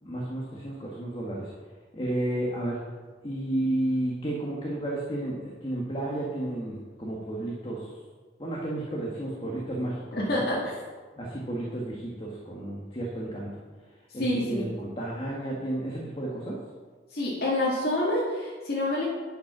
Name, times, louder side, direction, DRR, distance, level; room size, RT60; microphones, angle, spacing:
voice 1, 0.0-1.5 1.9-2.8 3.2-8.0 8.4-10.6 11.2-13.5 14.1-16.6, right 1 dB, 30° left, -3 dB, 1.5 m, -32 dB
voice 2, 10.1-10.7 14.2-14.7 17.1-19.1, left 1 dB, 60° left, -7 dB, 2.1 m, -27 dB
11.0 x 5.4 x 6.0 m, 1.4 s
head